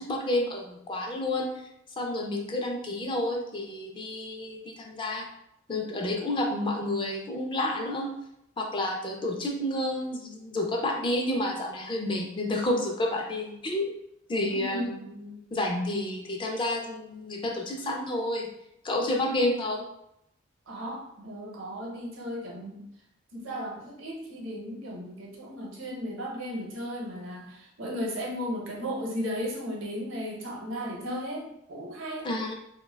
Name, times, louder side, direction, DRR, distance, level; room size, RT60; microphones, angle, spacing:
voice 1, 0.0-1.5 2.0-5.2 5.7-8.1 8.6-13.9 14.3-18.5 18.8-19.8 32.2-32.5, left 1 dB, 25° left, 1 dB, 0.4 m, -30 dB
voice 2, 14.5-15.0 20.7-22.8 23.3-32.3, equal, 85° right, -1 dB, 0.8 m, -35 dB
2.7 x 2.2 x 3.2 m, 0.79 s
head